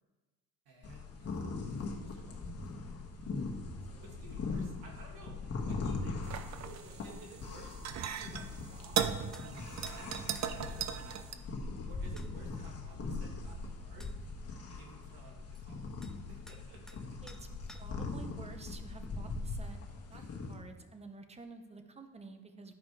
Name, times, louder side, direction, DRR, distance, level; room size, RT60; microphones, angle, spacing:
voice 1, 0.7-2.7 3.8-6.3 6.6-9.0 9.7-11.3 11.9-14.4 14.7-15.9 16.3-17.4 20.1-20.3, right 3 dB, 75° right, -1 dB, 2.3 m, -56 dB
sound 1, 0.8-20.5, left 3 dB, 40° left, 1.4 m, -41 dB
sound 2, 6.2-11.3, right 8 dB, 45° right, 0.6 m, -38 dB
sound 3, 9.3-9.5 9.9-10.0 10.3-10.5 11.8-11.9 12.2-12.3 13.5-13.6 14.0-14.2 15.5-15.6 16.0-16.2 16.5-17.0 17.3-18.1, left 1 dB, ahead, 0.4 m, -55 dB
voice 2, 17.6-19.8 20.1-20.2 20.5-22.7, right 3 dB, 15° right, 7 dB, 0.8 m, -50 dB
11.5 x 5.0 x 4.7 m, 1.2 s
cardioid pair, 120°, 37 cm